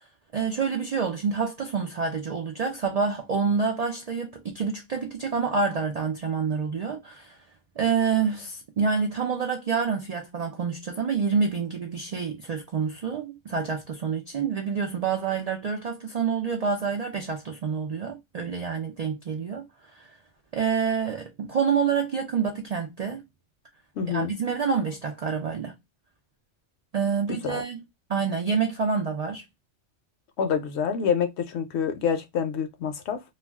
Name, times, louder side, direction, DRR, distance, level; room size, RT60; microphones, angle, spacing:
voice 1, 0.3-7.4 7.8-19.7 19.9-20.1 20.5-23.2 24.1-25.8 26.9-27.8 28.1-29.4, right 5 dB, 70° right, 0.3 m, -27 dB
voice 2, 24.0-24.3 27.4-27.6 30.4-33.2, left 7 dB, 70° left, 0.8 m, -27 dB
2.3 x 2.2 x 3.3 m
omnidirectional pair, 1.3 m